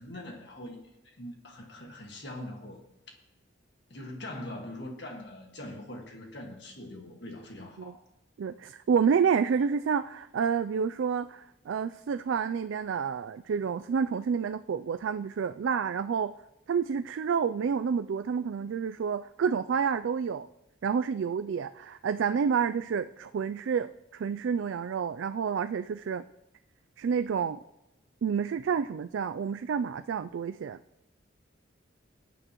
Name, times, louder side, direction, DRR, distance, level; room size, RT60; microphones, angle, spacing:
voice 1, 0.0-2.8 3.9-8.0, left 1 dB, 55° left, 1 dB, 1.8 m, -42 dB
voice 2, 8.4-16.3 16.7-20.5 20.8-26.2 27.0-27.6 28.2-30.8, right 6 dB, 70° right, 11 dB, 0.3 m, -29 dB
21.5 x 9.0 x 3.0 m, 0.94 s
head